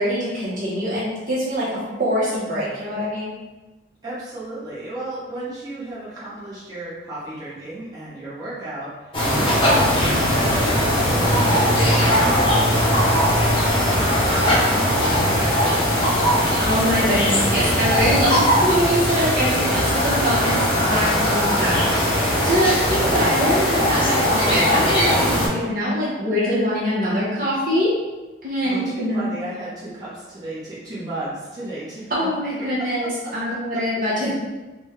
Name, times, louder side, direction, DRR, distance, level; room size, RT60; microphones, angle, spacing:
voice 1, 0.0-3.3 16.6-22.1 22.4-27.9 28.4-29.3 32.1-34.3, equal, 50° right, -8 dB, 0.9 m, -23 dB
voice 2, 4.0-16.2 28.6-32.1 32.8-33.3 33.7-33.8, right 1 dB, 20° right, -10 dB, 1.0 m, -34 dB
sound 1, 9.1-25.5, equal, 30° left, 0.7 m, -19 dB
3.4 x 2.2 x 3.2 m, 1.1 s
head